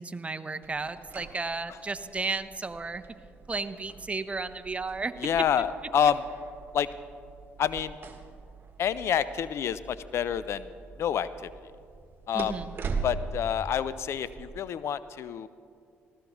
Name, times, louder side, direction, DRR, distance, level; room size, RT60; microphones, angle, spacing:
voice 1, 0.0-3.0 3.5-5.1 12.3-12.7, right 3 dB, 25° right, 10 dB, 0.8 m, -33 dB
sound 1, 0.6-14.6, right 4 dB, 45° right, 1.6 m, -42 dB
voice 2, 5.2-6.2 6.7-6.9 7.6-7.9 8.8-10.7 11.0-11.5 12.3-12.6 13.0-15.5, left 9 dB, 60° left, 15 dB, 0.5 m, -28 dB
19.5 x 15.0 x 3.0 m, 2.3 s
supercardioid pair, 60°, 5 cm